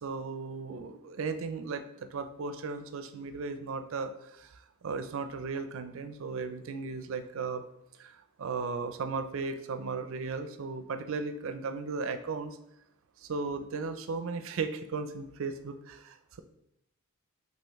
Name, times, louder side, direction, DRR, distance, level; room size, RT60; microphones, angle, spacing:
voice 1, 0.0-7.6 8.0-12.6 13.2-16.4, right 4 dB, 60° right, 9 dB, 0.4 m, -36 dB
5.5 x 3.0 x 3.1 m, 0.80 s
head